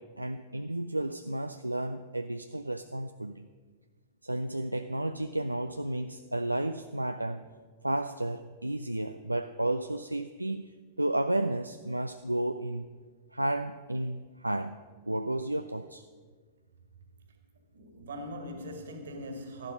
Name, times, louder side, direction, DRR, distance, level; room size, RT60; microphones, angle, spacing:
voice 1, 0.0-3.5 4.2-7.5 7.8-10.7 11.0-12.9 13.3-14.8 15.1-16.0, right 1 dB, 90° right, 9 dB, 0.4 m, -32 dB
voice 2, 17.7-19.7, equal, 65° right, 5 dB, 2.0 m, -41 dB
13.0 x 11.0 x 5.2 m, 1.5 s
figure-of-eight pair, 95°, 0 cm